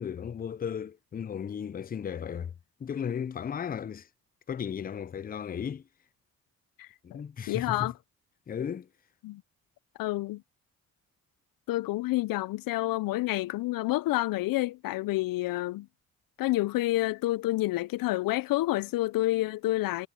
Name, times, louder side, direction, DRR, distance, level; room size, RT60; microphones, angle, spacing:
voice 1, 0.0-2.5 2.8-4.1 4.5-5.8 7.0-7.9 8.5-8.9, left 8 dB, 25° left, 0.4 m, -35 dB
voice 2, 6.8-7.2 7.5-7.9 9.2-9.4 10.0-10.4 11.7-15.9 16.4-20.1, left 17 dB, 85° left, 0.5 m, -29 dB
cardioid pair, 75°, 33 cm